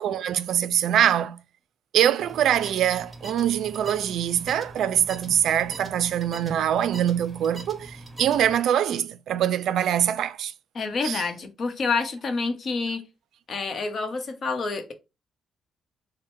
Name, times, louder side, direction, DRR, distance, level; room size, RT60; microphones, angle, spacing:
voice 1, 0.0-1.4 1.9-10.5 11.0-11.2, right 10 dB, 75° right, 0.3 m, -23 dB
sound 1, 2.2-8.6, right 2 dB, 20° right, 1.2 m, -42 dB
voice 2, 10.7-13.0 13.5-14.9, left 4 dB, 45° left, 0.8 m, -28 dB
4.3 x 2.1 x 4.6 m
cardioid pair, 90°, 0 cm